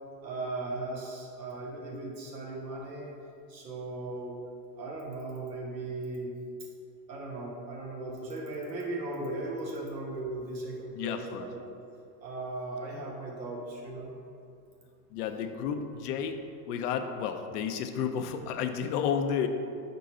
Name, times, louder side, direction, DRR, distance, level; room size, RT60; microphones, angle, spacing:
voice 1, 0.2-3.1 3.5-4.4 4.8-6.3 7.1-11.6 12.2-14.1, right 2 dB, 90° right, -2 dB, 1.4 m, -37 dB
voice 2, 10.9-11.5 15.1-16.4 16.7-19.5, left 7 dB, 70° left, 7 dB, 0.7 m, -31 dB
4.6 x 4.0 x 5.3 m, 2.4 s
hypercardioid pair, 90°, 49 cm